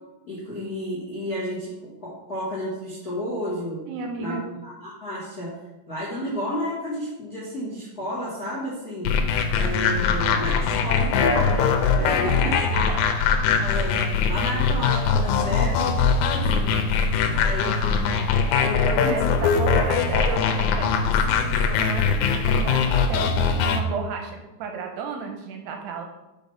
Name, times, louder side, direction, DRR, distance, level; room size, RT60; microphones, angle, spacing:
voice 1, 0.2-3.8 4.2-5.5 5.9-9.1 9.5-12.5 13.6-14.0 14.2-17.0 17.3-18.2 18.6-19.3, left 1 dB, 40° left, -7 dB, 1.4 m, -32 dB
voice 2, 3.9-4.4 12.0-12.4 12.7-13.2 15.3-16.2 18.8-26.0, right 5 dB, 80° right, 3 dB, 2.7 m, -34 dB
sound 1, 9.0-23.8, left 5 dB, 90° left, 3.1 m, -22 dB
7.1 x 5.0 x 5.6 m, 1.0 s
omnidirectional pair, 5.1 m